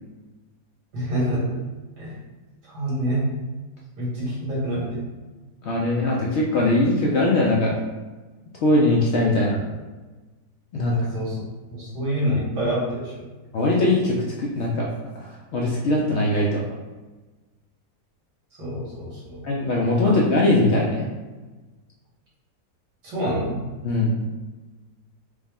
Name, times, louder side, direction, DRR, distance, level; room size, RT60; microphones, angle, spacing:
voice 1, 0.9-1.4 2.0-2.1 2.7-3.3 4.0-5.0 10.7-11.4 11.7-13.2 18.6-19.4 20.0-20.1 23.0-23.6, equal, 85° right, -7 dB, 2.1 m, -27 dB
voice 2, 5.6-7.7 8.6-9.6 10.7-10.9 13.5-14.9 15.2-16.6 19.4-21.0 23.8-24.1, left 2 dB, 70° left, -3 dB, 0.6 m, -21 dB
4.7 x 2.1 x 3.5 m, 1.2 s
omnidirectional pair, 1.7 m